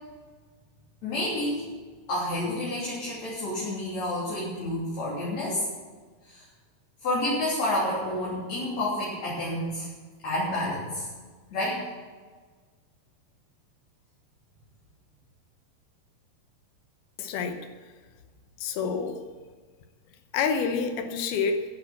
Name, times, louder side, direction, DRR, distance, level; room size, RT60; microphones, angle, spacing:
voice 1, 1.0-1.6 2.1-5.6 6.3-6.5 7.0-9.9 10.2-11.1 11.5-11.8, left 1 dB, 50° left, -7 dB, 4.2 m, -29 dB
voice 2, 17.2-17.6 18.6-19.2 20.3-21.6, left 5 dB, 80° left, 7 dB, 2.8 m, -28 dB
13.0 x 10.5 x 7.2 m, 1.5 s
omnidirectional pair, 4.4 m